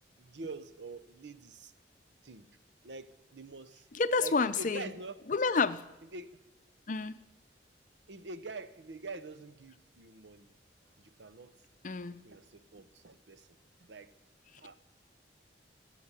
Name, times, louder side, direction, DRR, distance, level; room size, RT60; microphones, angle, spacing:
voice 1, 0.2-1.7 2.2-2.5 2.8-3.9 4.2-5.2 6.1-6.4 8.1-10.5 11.0-11.5 12.2-13.5 13.8-14.1 14.6-14.7, right 3 dB, 80° right, 0.8 m, -45 dB
voice 2, 3.9-4.9 5.3-5.9 6.9-7.2 11.8-12.2, left 4 dB, 45° left, 0.6 m, -29 dB
20.0 x 7.6 x 8.2 m
head